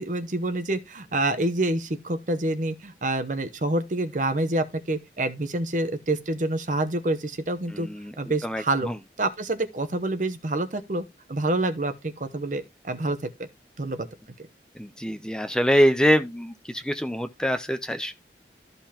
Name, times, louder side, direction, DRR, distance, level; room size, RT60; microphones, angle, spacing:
voice 1, 0.0-7.9 8.2-8.9 9.2-13.2 13.8-14.1, right 2 dB, 45° right, 0.8 m, -27 dB
voice 2, 7.7-8.1 8.4-9.0 14.8-18.2, equal, 5° left, 0.5 m, -24 dB
13.5 x 5.4 x 2.9 m
head